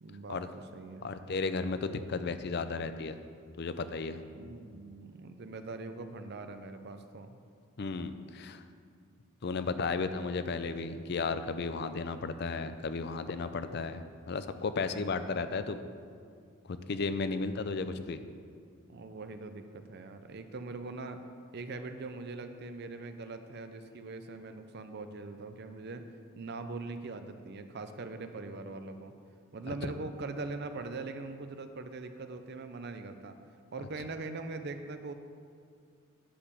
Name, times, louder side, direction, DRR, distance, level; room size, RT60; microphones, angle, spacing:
voice 1, 0.0-1.1 4.3-7.4 18.9-21.2 21.5-26.0 26.4-29.1 29.5-33.4 33.7-35.1, right 3 dB, 50° right, 8 dB, 0.5 m, -42 dB
voice 2, 1.0-3.2 3.6-4.2 7.8-8.6 9.4-15.8 16.7-18.2 29.8-29.9, left 4 dB, 50° left, 11 dB, 0.4 m, -34 dB
10.0 x 4.9 x 6.9 m, 2.2 s
head